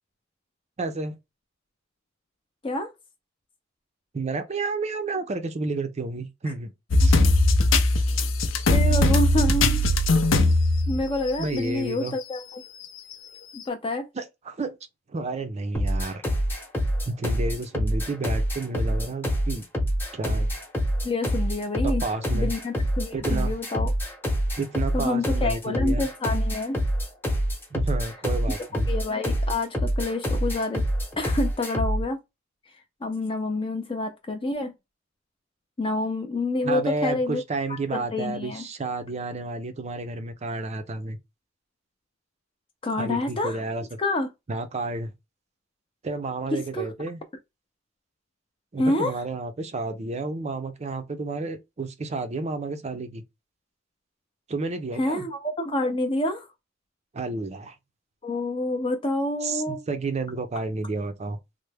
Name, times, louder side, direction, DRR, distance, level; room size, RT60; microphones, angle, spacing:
voice 1, 0.8-1.1 4.1-6.7 7.0-7.2 11.4-12.2 14.1-14.8 15.1-16.2 17.1-19.6 20.1-20.5 21.8-22.5 23.1-23.6 24.6-26.1 27.7-28.9 36.6-41.2 43.0-44.0 44.5-45.1 46.0-47.2 48.7-53.2 54.5-55.3 57.1-57.8 59.4-61.4, right 3 dB, 35° right, 0.5 m, -31 dB
sound 1, 6.9-11.6 12.1-12.2 13.1-13.2, left 2 dB, 75° left, 0.6 m, -20 dB
voice 2, 8.7-9.8 10.9-12.6 13.5-14.1 21.0-22.0 22.3-23.9 24.9-26.8 28.9-30.8 31.2-32.2 33.0-34.7 35.8-37.4 37.9-38.6 42.8-43.6 44.0-44.3 46.5-46.9 48.8-49.1 55.0-56.5 58.2-59.8, left 2 dB, 25° left, 0.5 m, -27 dB
sound 2, 15.7-32.0, equal, 10° left, 0.8 m, -26 dB
3.2 x 2.0 x 3.3 m
head